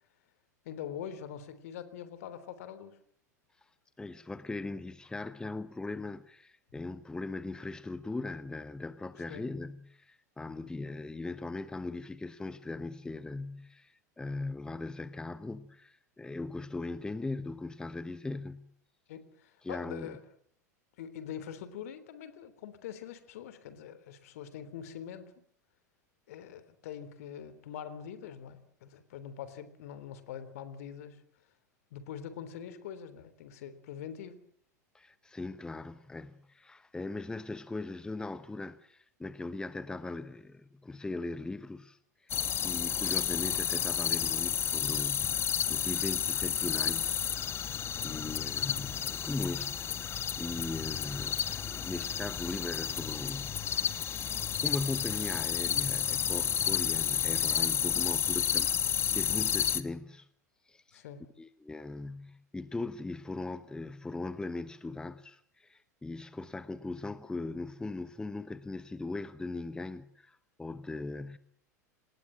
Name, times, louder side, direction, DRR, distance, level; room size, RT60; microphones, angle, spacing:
voice 1, 0.7-3.0 9.3-9.4 19.1-20.2 21.0-25.4 26.3-31.2 31.9-34.4 48.1-48.2 60.9-61.3, left 9 dB, 60° left, 3.5 m, -44 dB
voice 2, 4.0-18.7 19.6-20.2 34.9-42.4 42.6-47.3 48.0-54.3 54.6-58.7 59.1-60.3 60.7-61.0 61.4-71.4, left 3 dB, 10° left, 1.1 m, -39 dB
sound 1, 42.3-59.8, left 9 dB, 25° left, 1.4 m, -31 dB
28.5 x 20.0 x 7.7 m
figure-of-eight pair, 85°, 9 cm